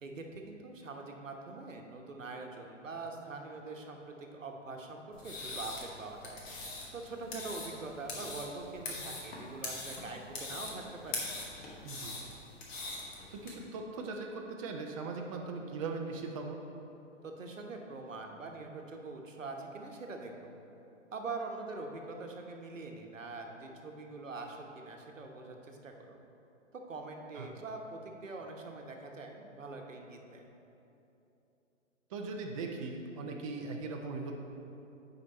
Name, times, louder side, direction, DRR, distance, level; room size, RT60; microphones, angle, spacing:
voice 1, 0.0-11.2 17.2-20.3 21.1-26.2 26.7-30.4, right 3 dB, 80° right, 2 dB, 1.0 m, -44 dB
sound 1, 5.1-13.5, left 3 dB, 20° left, 1.1 m, -42 dB
voice 2, 11.8-12.2 13.3-16.6 27.4-27.5 32.1-34.3, right 3 dB, 30° right, 2 dB, 0.5 m, -39 dB
8.3 x 4.9 x 4.1 m, 2.9 s
figure-of-eight pair, 120°, 38 cm